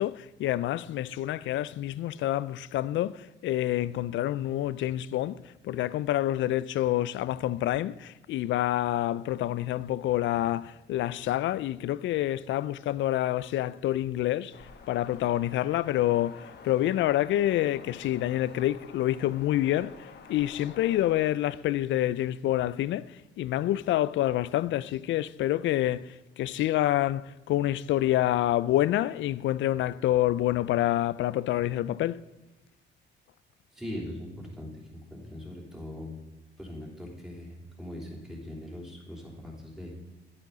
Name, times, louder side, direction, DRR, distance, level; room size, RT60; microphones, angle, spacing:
voice 1, 0.0-14.6 14.9-32.2, left 13 dB, 75° left, 0.4 m, -27 dB
sound 1, 14.5-21.3, left 5 dB, 55° left, 1.2 m, -49 dB
voice 2, 33.7-34.8 35.1-36.1 36.6-39.9, left 1 dB, 5° right, 3.3 m, -40 dB
10.5 x 8.8 x 4.0 m
cardioid pair, 90°, 20 cm